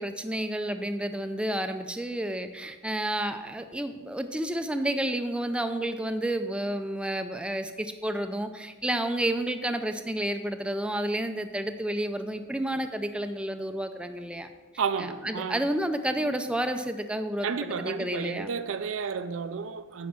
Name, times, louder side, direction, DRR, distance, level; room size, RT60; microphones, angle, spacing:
voice 1, 0.0-14.5 15.0-18.6, right 1 dB, 5° right, 0.4 m, -30 dB
voice 2, 14.8-15.7 17.4-20.1, right 6 dB, 75° right, 0.5 m, -32 dB
9.4 x 5.3 x 6.0 m
head